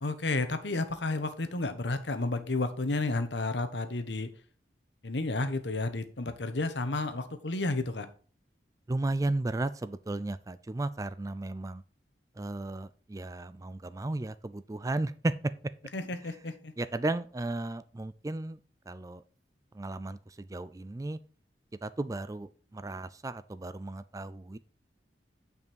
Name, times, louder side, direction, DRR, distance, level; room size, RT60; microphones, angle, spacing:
voice 1, 0.0-4.3 5.0-8.1 15.9-16.7, left 2 dB, 80° left, 9 dB, 1.2 m, -31 dB
voice 2, 8.9-11.8 12.4-15.5 16.2-16.4 16.8-18.6 18.9-19.2 19.7-21.2 21.8-24.6, right 2 dB, 20° right, 15 dB, 0.4 m, -34 dB
9.5 x 5.4 x 4.5 m, 0.40 s
head